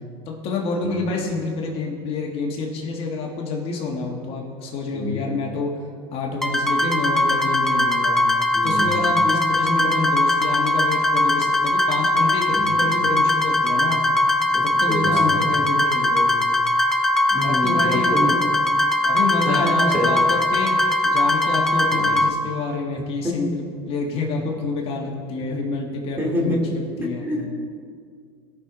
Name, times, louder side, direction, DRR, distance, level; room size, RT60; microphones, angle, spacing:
voice 1, 0.3-5.8 6.1-8.2 8.6-14.0 14.6-16.3 17.4-18.4 19.0-27.3, left 3 dB, 45° left, -1 dB, 1.9 m, -28 dB
sound 1, 6.4-22.3, left 1 dB, 5° left, 0.7 m, -20 dB
voice 2, 8.5-8.9 12.5-12.7 14.5-15.4 17.3-18.3 19.5-20.1 21.9-22.1 23.2-23.3 26.2-26.6 27.0-27.5, equal, 15° right, -2 dB, 2.6 m, -26 dB
17.5 x 6.3 x 4.0 m, 2.1 s
supercardioid pair, 115°, 13 cm